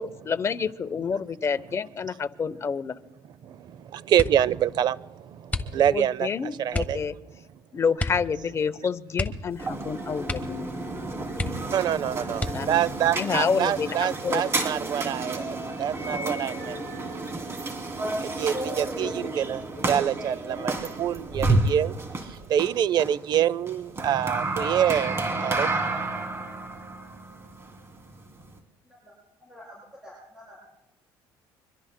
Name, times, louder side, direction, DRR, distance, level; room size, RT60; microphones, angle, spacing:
voice 1, 0.0-3.0 5.9-7.1 7.7-10.7 12.5-14.4, left 6 dB, 30° left, 12 dB, 0.8 m, -28 dB
voice 2, 3.8-6.3 6.6-7.0 11.7-16.8 18.2-22.0 22.3-25.1 25.4-25.7, right 10 dB, 55° right, 20 dB, 0.6 m, -26 dB
sound 1, 4.1-4.6 5.5-6.1 6.7-7.0 8.0-8.3 8.6-8.7 9.1-9.9 10.2-10.7 11.0-11.1 11.3-11.9 12.3-12.9 13.6-14.2 14.6-15.0, left 2 dB, 15° left, 1.3 m, -32 dB
sound 2, 9.5-28.6, right 2 dB, 30° right, 2.8 m, -31 dB
voice 3, 29.4-30.7, equal, 10° right, -5 dB, 7.1 m, -48 dB
25.0 x 23.5 x 2.2 m, 0.98 s
cardioid pair, 110°, 9 cm